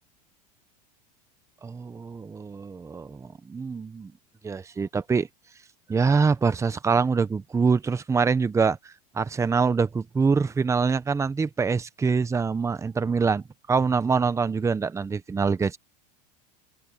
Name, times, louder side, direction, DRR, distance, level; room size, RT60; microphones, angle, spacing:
voice 1, 1.6-4.1 4.4-5.3 5.9-13.4 13.7-15.8, right 5 dB, 15° right, 1.0 m, -24 dB
open air
supercardioid pair, 120°, 21 cm